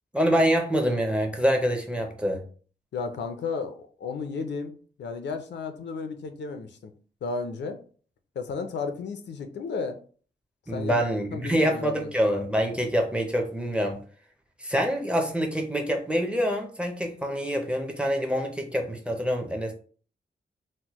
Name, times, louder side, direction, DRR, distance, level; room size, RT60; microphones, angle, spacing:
voice 1, 0.1-2.4 10.7-14.0 14.6-19.7, equal, 5° right, 3 dB, 0.5 m, -26 dB
voice 2, 2.9-6.9 7.2-7.8 8.4-10.0 10.7-11.0 11.3-12.1, left 4 dB, 90° left, 8 dB, 0.5 m, -33 dB
4.3 x 2.1 x 2.9 m, 0.42 s
wide cardioid pair, 160°, 18 cm